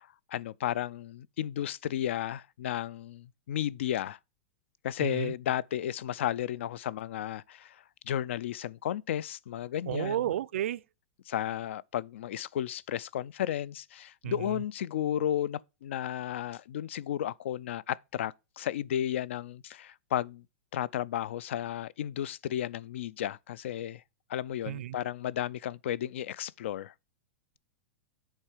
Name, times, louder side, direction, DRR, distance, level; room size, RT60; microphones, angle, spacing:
voice 1, 0.0-4.2 4.8-10.2 11.3-20.4 20.7-24.0 24.3-26.9, left 11 dB, 70° left, 0.4 m, -33 dB
voice 2, 5.0-5.3 9.9-10.8 14.2-14.6 24.7-25.0, right 12 dB, 75° right, 0.4 m, -32 dB
7.4 x 4.5 x 4.9 m
supercardioid pair, 175°, 7 cm